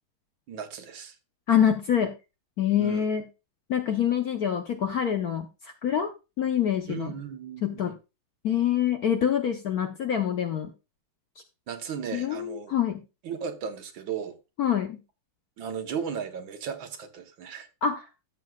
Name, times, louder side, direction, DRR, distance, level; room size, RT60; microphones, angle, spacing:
voice 1, 0.5-1.2 2.8-3.1 6.9-7.9 11.7-12.8 13.2-14.4 15.6-17.7, right 7 dB, 65° right, 1.7 m, -36 dB
voice 2, 1.5-2.1 2.6-3.3 3.7-7.1 7.6-8.0 8.4-10.7 12.1-13.0 14.6-15.0 17.8-18.0, left 9 dB, 60° left, 1.0 m, -26 dB
14.0 x 7.5 x 2.3 m
omnidirectional pair, 2.4 m